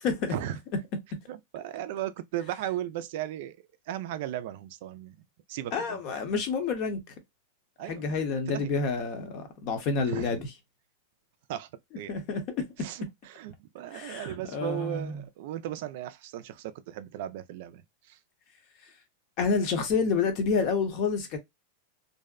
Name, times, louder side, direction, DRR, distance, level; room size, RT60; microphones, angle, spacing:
voice 1, 0.0-0.3 5.7-7.0 7.9-10.4 12.1-12.6 13.9-15.1 19.4-21.4, left 5 dB, 45° left, 0.8 m, -28 dB
voice 2, 1.3-6.0 7.8-8.1 8.5-8.7 10.1-10.4 11.5-11.7 11.9-12.1 12.8-18.2, right 12 dB, 60° right, 0.3 m, -36 dB
2.6 x 2.1 x 2.3 m
supercardioid pair, 135°, 0 cm